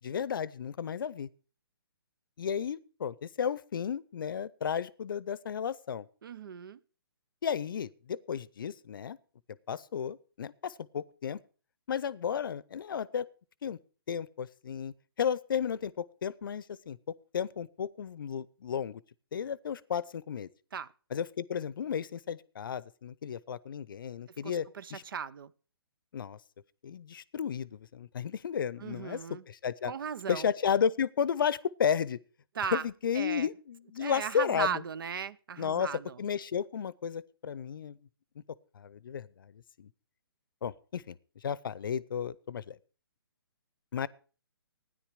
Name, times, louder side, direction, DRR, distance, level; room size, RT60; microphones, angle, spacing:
voice 1, 0.0-1.3 2.4-6.1 7.4-9.2 9.7-11.4 11.9-13.3 13.6-13.8 14.1-17.0 17.3-19.0 19.3-20.5 21.1-25.0 26.1-26.4 26.8-29.2 29.5-29.9 30.3-32.2 32.7-34.8 35.6-38.0 38.4-38.5 38.7-39.9 40.6-42.8 43.9-44.1, left 7 dB, 60° left, 0.6 m, -33 dB
voice 2, 6.2-6.8 20.7-20.9 24.4-25.5 28.8-29.4 29.8-30.5 32.5-32.8 33.1-33.5 34.0-36.2, right 7 dB, 60° right, 0.6 m, -37 dB
13.0 x 10.0 x 4.9 m
figure-of-eight pair, 135°, 13 cm